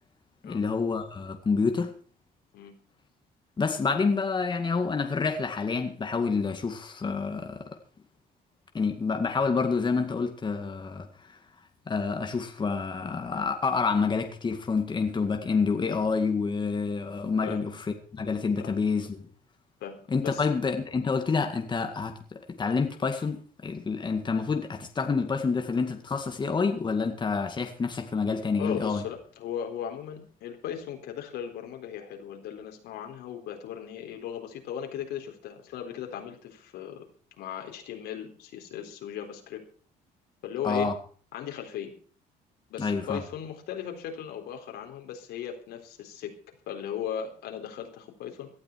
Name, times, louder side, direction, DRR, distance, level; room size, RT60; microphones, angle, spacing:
voice 1, 0.4-1.9 3.6-7.7 8.7-11.4 11.9-17.8 18.1-19.3 20.1-29.0 40.6-40.9 42.8-43.2, left 4 dB, 25° left, 2.0 m, -28 dB
voice 2, 17.4-17.8 18.6-18.8 19.8-20.5 28.6-37.0 37.4-39.6 40.4-40.9 41.3-41.9 42.7-46.3 46.7-48.5, left 9 dB, 80° left, 4.1 m, -37 dB
18.0 x 12.0 x 4.6 m
cardioid pair, 110°, 17 cm